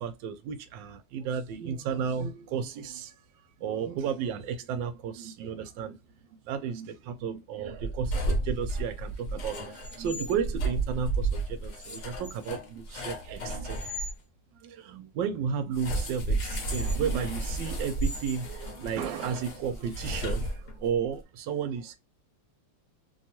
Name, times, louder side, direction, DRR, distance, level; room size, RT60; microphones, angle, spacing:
voice 1, 0.0-3.1 3.6-6.0 6.5-14.0 14.6-22.0, right 7 dB, 80° right, 1.2 m, -33 dB
sound 1, 7.8-14.1 15.7-21.0, right 2 dB, 55° left, 0.9 m, -32 dB
3.1 x 2.3 x 2.8 m
omnidirectional pair, 2.0 m